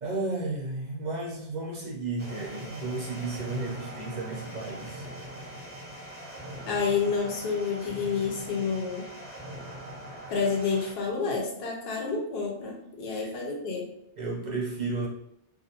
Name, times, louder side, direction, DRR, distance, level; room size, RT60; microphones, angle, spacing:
voice 1, 0.0-5.1 13.1-13.3 14.2-15.1, right 3 dB, 55° right, -3 dB, 0.5 m, -33 dB
sound 1, 2.2-10.9, right 1 dB, 10° right, 0.7 m, -42 dB
voice 2, 6.7-9.1 10.3-13.9, left 5 dB, 60° left, 0 dB, 0.8 m, -29 dB
2.4 x 2.1 x 2.8 m, 0.77 s
omnidirectional pair, 1.2 m